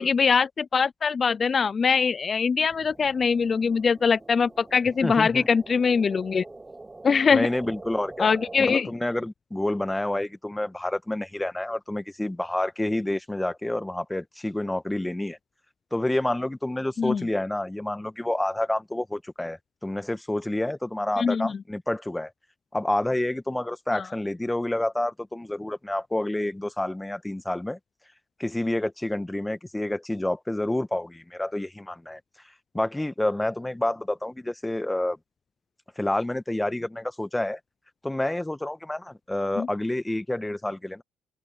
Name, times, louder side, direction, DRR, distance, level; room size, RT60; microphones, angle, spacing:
voice 1, 0.0-6.4 7.0-7.5 8.2-8.9 17.0-17.2 21.2-21.6 23.9-24.0 39.6-39.7, left 5 dB, 40° left, 0.6 m, -23 dB
sound 1, 2.7-8.8, right 2 dB, 20° right, 4.8 m, -44 dB
voice 2, 5.0-5.5 7.3-15.4 15.9-22.3 22.7-27.8 28.4-32.2 32.7-35.2 36.0-37.6 38.0-41.0, left 1 dB, 10° left, 1.6 m, -28 dB
hypercardioid pair, 60°, 0 cm